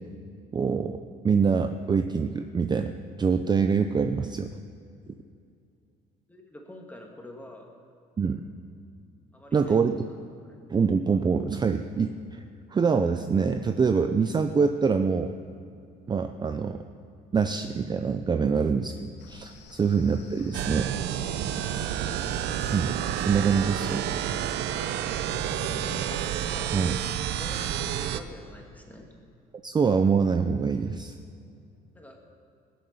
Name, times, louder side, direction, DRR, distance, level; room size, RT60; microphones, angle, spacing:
voice 1, 0.5-4.5 8.2-8.4 9.5-10.0 10.7-12.4 12.7-15.3 16.1-16.8 17.3-20.9 22.7-24.0 26.7-27.0 29.6-31.1, right 5 dB, 25° right, 7 dB, 0.6 m, -25 dB
voice 2, 6.3-7.8 9.3-9.8 21.3-22.0 25.1-26.1 26.5-26.8 27.3-29.1 31.9-32.2, left 1 dB, 10° left, 1 dB, 2.4 m, -46 dB
sound 1, 19.2-28.1, left 3 dB, 90° left, 2.0 m, -46 dB
sound 2, 20.5-28.2, right 11 dB, 80° right, 0.7 m, -30 dB
21.0 x 7.3 x 7.0 m, 2.5 s
cardioid pair, 110°, 17 cm